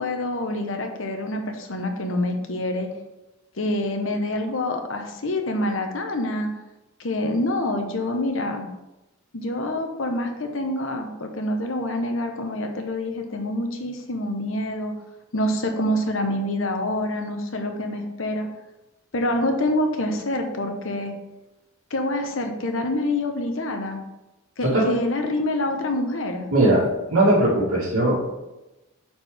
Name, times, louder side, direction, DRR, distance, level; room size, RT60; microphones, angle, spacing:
voice 1, 0.0-2.9 3.6-6.5 7.0-8.7 9.3-14.9 15.3-18.5 19.1-21.1 21.9-24.0 24.6-26.4, left 1 dB, 65° left, 5 dB, 1.0 m, -26 dB
voice 2, 26.5-28.3, right 1 dB, 80° right, -8 dB, 2.0 m, -19 dB
8.8 x 4.5 x 3.5 m, 0.99 s
head